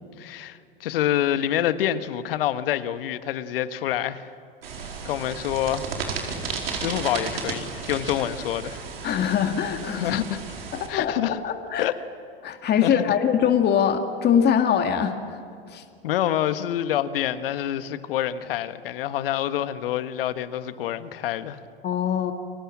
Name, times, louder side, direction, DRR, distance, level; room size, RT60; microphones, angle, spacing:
voice 1, 0.2-4.3 5.0-5.9 6.8-8.8 9.9-10.4 10.9-11.4 11.8-11.9 12.8-12.9 16.0-21.6, left 11 dB, 70° left, 1.5 m, -27 dB
sound 1, 4.6-10.9, right 5 dB, 80° right, 4.7 m, -33 dB
voice 2, 9.0-10.2 10.8-11.9 12.4-15.4 15.7-15.8 21.8-22.3, left 8 dB, 35° left, 2.2 m, -23 dB
30.0 x 23.5 x 7.5 m
hypercardioid pair, 95°, 29 cm